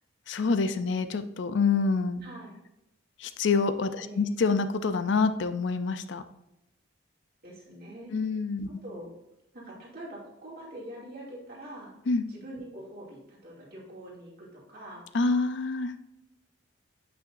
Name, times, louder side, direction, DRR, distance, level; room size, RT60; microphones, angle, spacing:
voice 1, 0.3-2.2 3.2-6.2 8.1-8.7 12.1-12.2 15.1-15.9, left 4 dB, 65° left, 11 dB, 0.5 m, -26 dB
voice 2, 2.2-2.6 4.0-4.2 7.4-8.1 8.8-9.1 9.5-11.9 12.3-15.0, right 1 dB, 50° right, -5 dB, 2.4 m, -44 dB
8.5 x 5.9 x 2.6 m, 0.87 s
head